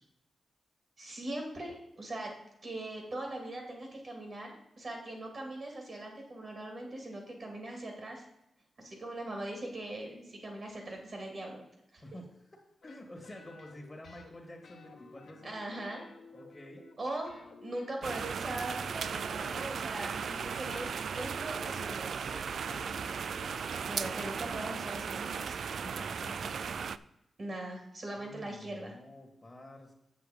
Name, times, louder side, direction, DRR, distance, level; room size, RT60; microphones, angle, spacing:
voice 1, 1.0-2.4 2.6-8.2 8.8-11.6 11.9-12.0 15.4-16.0 17.0-17.3 17.6-22.1 23.8-25.6 27.4-28.9, right 1 dB, 45° right, 2 dB, 2.3 m, -40 dB
voice 2, 12.0-15.7 16.3-16.9 22.3-23.0 25.8-26.8 28.1-29.9, left 1 dB, 20° left, 0 dB, 1.9 m, -50 dB
sound 1, 12.8-14.4 14.6-17.0 17.2-24.9, left 3 dB, 65° left, 1.3 m, -54 dB
sound 2, 18.0-27.0, right 6 dB, 70° right, 0.3 m, -36 dB
7.9 x 7.0 x 5.1 m, 0.86 s
wide cardioid pair, 110°, 0 cm